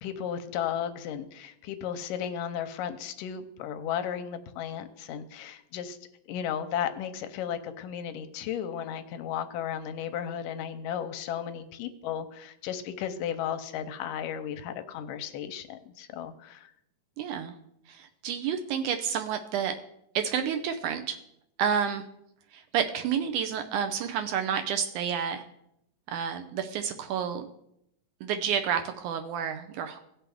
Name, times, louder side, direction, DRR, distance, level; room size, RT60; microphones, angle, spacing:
voice 1, 0.0-6.0 6.3-16.7, left 9 dB, 85° left, 9 dB, 2.2 m, -34 dB
voice 2, 17.2-17.5 17.9-19.7 20.2-21.2 21.6-22.0 22.5-25.5 26.1-27.5 28.2-30.0, right 8 dB, 80° right, 7 dB, 1.8 m, -30 dB
17.0 x 5.9 x 3.4 m, 0.78 s
omnidirectional pair, 3.9 m